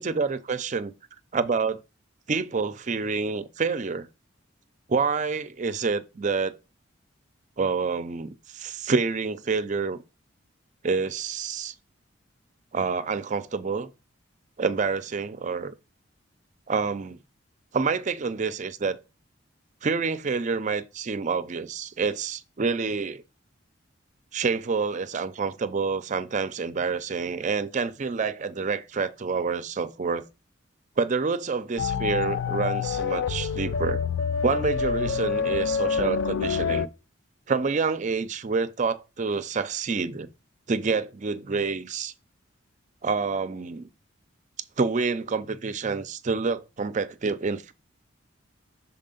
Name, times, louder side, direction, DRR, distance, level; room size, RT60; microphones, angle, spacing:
voice 1, 0.0-0.9 1.3-1.7 2.3-4.1 4.9-6.6 7.6-10.0 10.8-11.7 12.7-13.9 14.6-15.7 16.7-17.2 17.7-19.0 19.8-23.2 24.3-30.3 31.0-34.0 34.4-36.9 37.5-40.3 40.7-42.1 43.0-43.9 44.8-47.7, right 4 dB, 40° right, 0.4 m, -27 dB
sound 1, 31.8-36.9, left 6 dB, 80° left, 0.4 m, -27 dB
6.5 x 4.2 x 3.8 m
head